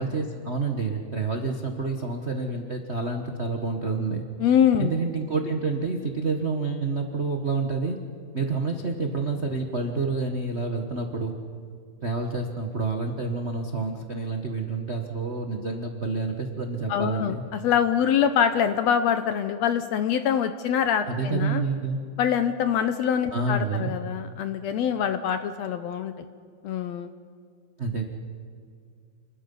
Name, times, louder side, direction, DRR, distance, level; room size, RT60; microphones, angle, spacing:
voice 1, 0.0-4.2 4.8-8.0 8.3-11.3 12.0-17.4 21.1-22.0 23.3-23.9 27.8-28.0, right 3 dB, 70° right, 3 dB, 0.6 m, -28 dB
voice 2, 4.4-4.9 16.9-21.6 22.2-26.1 26.6-27.1, left 8 dB, 75° left, 9 dB, 1.7 m, -24 dB
28.5 x 21.0 x 5.5 m, 2.2 s
omnidirectional pair, 3.7 m